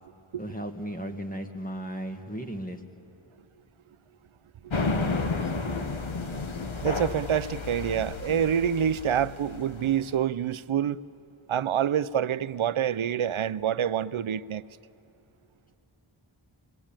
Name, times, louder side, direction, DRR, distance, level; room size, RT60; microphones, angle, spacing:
voice 1, 0.4-2.8, right 1 dB, 15° left, 1.8 m, -35 dB
sound 1, 4.7-10.1, left 3 dB, 70° left, 1.3 m, -32 dB
voice 2, 6.8-11.0 11.5-14.6, right 9 dB, 75° right, 0.6 m, -27 dB
24.0 x 21.5 x 8.9 m
wide cardioid pair, 50°, 49 cm